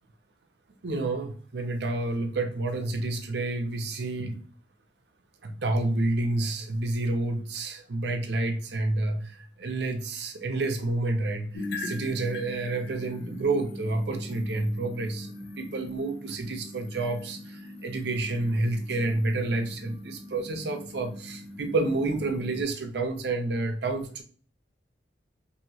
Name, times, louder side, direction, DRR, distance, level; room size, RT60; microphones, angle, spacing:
voice 1, 0.8-4.4 5.4-24.2, right 2 dB, 70° right, 5 dB, 0.6 m, -29 dB
sound 1, 11.5-22.6, left 2 dB, 85° left, 0.6 m, -41 dB
2.9 x 2.7 x 2.7 m, 0.42 s
head